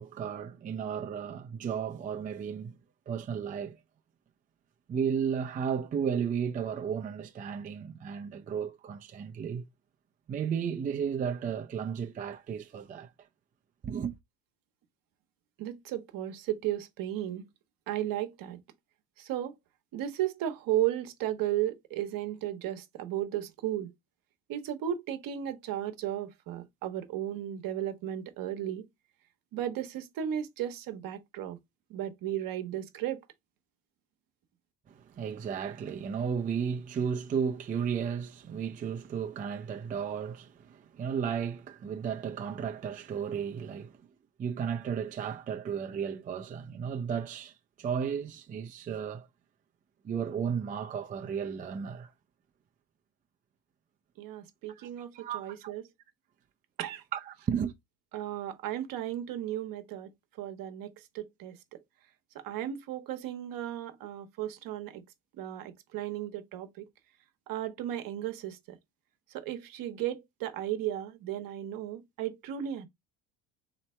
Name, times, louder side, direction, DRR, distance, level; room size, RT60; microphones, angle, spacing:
voice 1, 0.0-2.7 3.1-3.8 4.9-9.6 10.3-13.1 13.8-14.1 34.9-44.0 44.4-49.3 50.0-52.1 54.7-55.7 57.1-57.7, right 7 dB, 20° right, 0.4 m, -34 dB
voice 2, 15.6-17.4 17.9-18.6 19.2-19.5 19.9-23.9 24.5-28.8 29.5-31.6 31.9-33.2 54.2-55.8 56.8-57.0 58.1-60.1 60.4-61.6 62.3-65.0 65.4-66.9 67.5-68.6 69.3-72.9, right 12 dB, 60° right, 0.9 m, -35 dB
3.2 x 2.9 x 4.2 m
cardioid pair, 110°, 38 cm